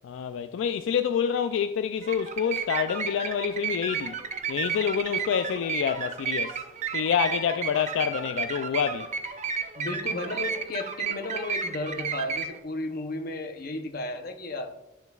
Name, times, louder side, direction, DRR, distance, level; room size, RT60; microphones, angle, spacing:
voice 1, 0.0-4.2 4.5-6.6 6.9-9.1, left 7 dB, 75° left, 0.3 m, -27 dB
sound 1, 2.0-12.6, right 6 dB, 35° right, 0.5 m, -32 dB
voice 2, 9.8-14.7, left 2 dB, 50° left, 0.7 m, -34 dB
12.0 x 6.7 x 2.3 m
head